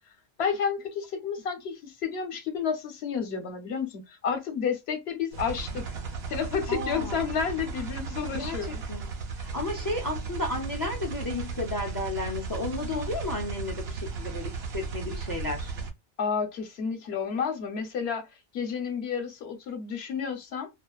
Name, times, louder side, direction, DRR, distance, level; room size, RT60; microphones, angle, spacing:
voice 1, 0.4-5.9 6.3-8.8 16.2-18.3 18.5-20.7, left 6 dB, 80° left, 0.9 m, -31 dB
sound 1, 5.3-15.9, right 4 dB, 80° right, 0.9 m, -35 dB
voice 2, 6.7-7.3 8.3-15.7, left 2 dB, 30° left, 0.4 m, -33 dB
2.4 x 2.2 x 2.3 m
omnidirectional pair, 1.1 m